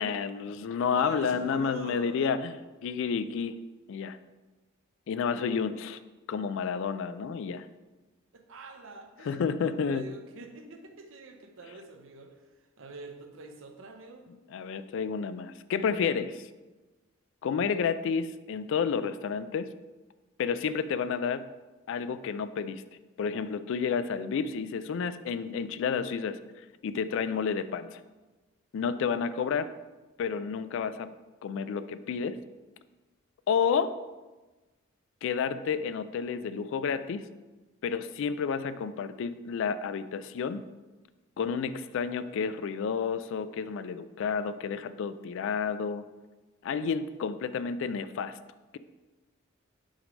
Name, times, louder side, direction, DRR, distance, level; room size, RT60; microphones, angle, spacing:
voice 1, 0.0-2.5 2.8-3.6 3.9-4.2 5.1-6.0 6.3-7.7 9.2-10.1 14.5-16.5 17.4-19.7 20.4-21.5 21.9-22.8 23.2-26.4 26.8-28.0 28.7-29.7 30.2-31.1 31.4-32.4 33.5-34.0 35.2-37.3 37.8-40.6 41.4-46.1 46.6-48.4, left 6 dB, 65° left, 14 dB, 0.3 m, -30 dB
voice 2, 0.9-2.2 8.3-12.3 12.8-14.3, right 3 dB, 65° right, 5 dB, 0.7 m, -45 dB
6.4 x 3.2 x 5.1 m, 1.2 s
head